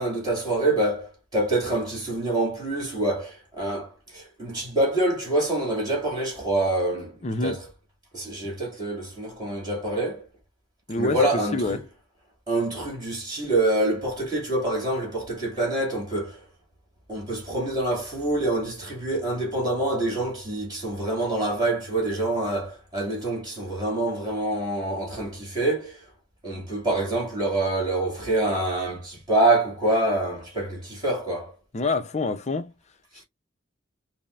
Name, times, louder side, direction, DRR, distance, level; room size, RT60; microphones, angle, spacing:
voice 1, 0.0-7.6 8.1-10.3 11.0-11.8 12.5-16.4 17.1-26.0 26.4-31.5 33.1-33.2, right 2 dB, 20° right, 2.3 m, -26 dB
voice 2, 7.2-7.6 10.9-11.2 11.5-11.8 31.7-32.7, left 3 dB, 35° left, 0.6 m, -26 dB
5.5 x 2.1 x 2.5 m
head